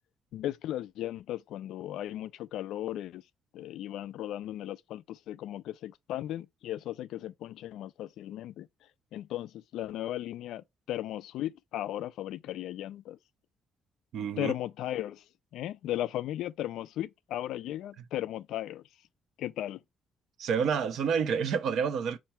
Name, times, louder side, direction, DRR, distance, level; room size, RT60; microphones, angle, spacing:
voice 1, 0.3-3.2 3.5-8.7 9.1-13.2 14.4-15.2 15.5-18.8 19.4-19.8, left 13 dB, 85° left, 0.3 m, -36 dB
voice 2, 14.1-14.5 20.4-22.2, right 6 dB, 75° right, 0.7 m, -28 dB
4.5 x 2.5 x 4.2 m
cardioid pair, 90°, 0 cm